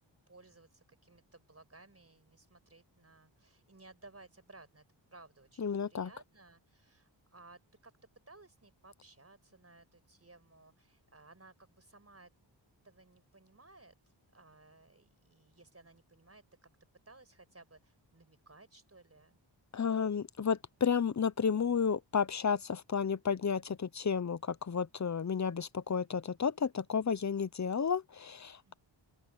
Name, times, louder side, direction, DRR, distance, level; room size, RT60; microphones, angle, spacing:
voice 1, 0.3-4.8 5.1-7.9 8.3-12.3 12.8-16.4 17.1-19.4 28.6-28.8, right 2 dB, 30° right, 5.7 m, -59 dB
voice 2, 5.6-6.1 19.7-28.7, left 6 dB, 40° left, 0.8 m, -32 dB
wide cardioid pair, 65°, 46 cm